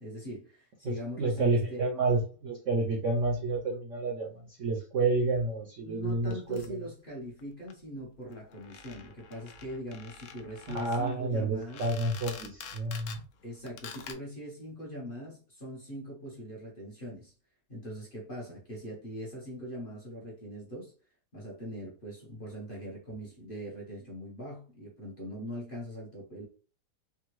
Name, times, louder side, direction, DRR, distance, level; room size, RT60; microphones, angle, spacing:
voice 1, 0.0-1.9 5.8-11.9 13.4-17.3 17.7-20.9 21.3-26.4, equal, 40° left, 0.9 m, -41 dB
voice 2, 0.8-6.7 10.7-13.2, right 3 dB, 60° right, 0.8 m, -30 dB
sound 1, 6.3-6.7 7.4-7.5 7.7-7.8 8.0-8.1 8.2-13.2 13.7-14.1, left 6 dB, 90° left, 0.6 m, -47 dB
3.6 x 2.1 x 3.0 m
omnidirectional pair, 1.9 m